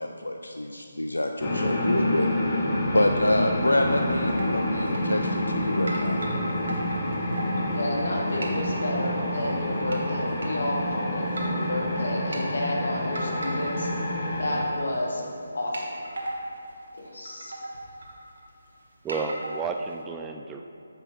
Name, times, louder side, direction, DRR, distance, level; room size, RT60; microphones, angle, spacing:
voice 1, 0.0-2.3 2.9-6.2, left 1 dB, 85° left, 4 dB, 0.4 m, -26 dB
sound 1, 1.4-14.6, left 1 dB, 35° left, 1.6 m, -28 dB
voice 2, 2.9-3.2 19.0-20.6, right 4 dB, 10° right, 4 dB, 0.3 m, -32 dB
sound 2, 3.6-4.0 4.3-4.5 4.9-5.6 5.9-8.2 8.4-8.8 9.3-10.0 10.4-10.5 11.2-11.7 12.1-12.4 13.1-14.0 14.3-15.0 15.2-15.3 15.7-16.5 17.0-17.1 17.3-18.6 19.1-19.9, right 1 dB, 65° right, 1.4 m, -36 dB
voice 3, 7.7-13.9 14.4-15.2 15.5-16.0 17.0-17.5, left 1 dB, 65° left, -2 dB, 1.7 m, -31 dB
9.8 x 6.8 x 2.8 m, 2.6 s
figure-of-eight pair, 150°, 0 cm